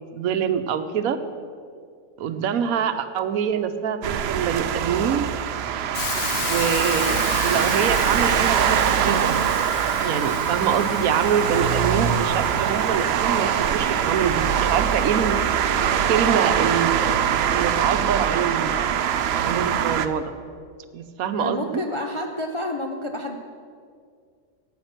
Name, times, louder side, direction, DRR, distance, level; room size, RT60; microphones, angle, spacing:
voice 1, 0.1-1.2 2.2-5.3 6.4-9.4 10.0-15.4 16.1-17.2 17.5-18.8 19.4-20.3 20.9-21.8, right 7 dB, 85° right, 10 dB, 1.2 m, -25 dB
sound 1, 4.0-20.1, right 9 dB, 65° right, 0.7 m, -23 dB
Hiss, 5.9-15.8, left 8 dB, 85° left, 1.2 m, -35 dB
voice 2, 21.4-23.4, left 1 dB, 40° left, 3 dB, 0.4 m, -29 dB
10.5 x 9.0 x 6.5 m, 2.2 s
omnidirectional pair, 1.4 m